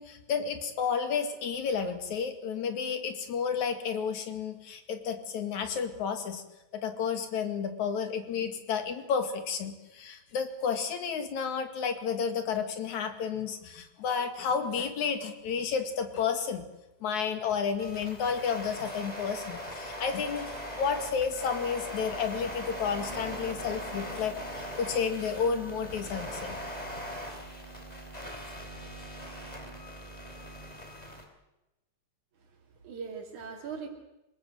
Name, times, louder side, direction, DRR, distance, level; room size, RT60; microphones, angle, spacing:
voice 1, 0.0-6.4 6.7-16.7 17.0-26.6 28.2-28.4, left 6 dB, 80° left, 7 dB, 3.5 m, -31 dB
sound 1, 17.8-31.3, equal, 15° left, 3.5 m, -40 dB
voice 2, 32.4-33.9, right 5 dB, 85° right, 1 dB, 4.2 m, -41 dB
27.0 x 18.0 x 7.9 m, 0.96 s
omnidirectional pair, 3.3 m